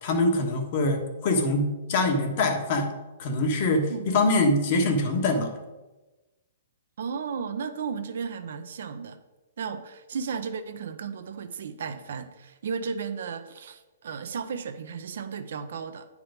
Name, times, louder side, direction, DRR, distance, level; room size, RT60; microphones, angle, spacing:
voice 1, 0.0-5.5, left 2 dB, 45° left, 4 dB, 1.4 m, -24 dB
voice 2, 7.0-9.2 9.6-16.1, right 6 dB, 70° right, 9 dB, 0.7 m, -34 dB
8.6 x 4.8 x 5.1 m, 1.1 s
hypercardioid pair, 150°, 0 cm